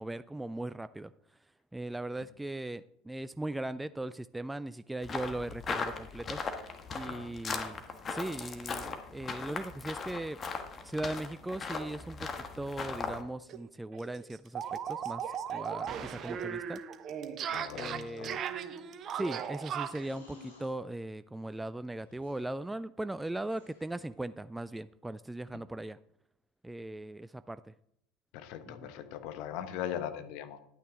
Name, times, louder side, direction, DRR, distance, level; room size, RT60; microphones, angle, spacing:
voice 1, 0.0-1.4 1.7-6.4 6.9-10.4 10.8-16.8 17.7-18.4 19.1-26.0 26.6-27.7 28.7-28.9, right 1 dB, 10° right, 14 dB, 0.3 m, -39 dB
sound 1, 5.0-13.2, left 4 dB, 30° left, 1.5 m, -39 dB
sound 2, 13.1-13.2 13.5-13.6 13.9-20.1, right 8 dB, 40° right, 0.9 m, -37 dB
sound 3, 15.5-16.4 17.9-18.7 19.8-20.8 22.0-22.5 23.4-24.1, left 3 dB, 85° left, 3.4 m, -55 dB
voice 2, 17.5-18.4 25.5-25.6 28.3-30.6, left 10 dB, 55° left, 9 dB, 1.2 m, -40 dB
11.0 x 9.3 x 3.7 m, 0.75 s
figure-of-eight pair, 75°, 0 cm